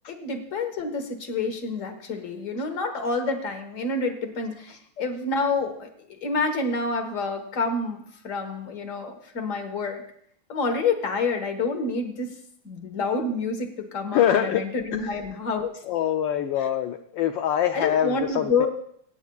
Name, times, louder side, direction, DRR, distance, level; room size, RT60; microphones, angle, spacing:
voice 1, 0.1-5.9 6.2-10.0 10.5-12.3 12.6-15.8 16.6-16.7 17.7-18.7, left 3 dB, 40° left, 6 dB, 1.5 m, -28 dB
voice 2, 14.1-14.6 14.9-15.1 15.9-18.7, left 10 dB, 70° left, 6 dB, 1.2 m, -24 dB
26.0 x 8.9 x 2.3 m, 0.68 s
omnidirectional pair, 2.4 m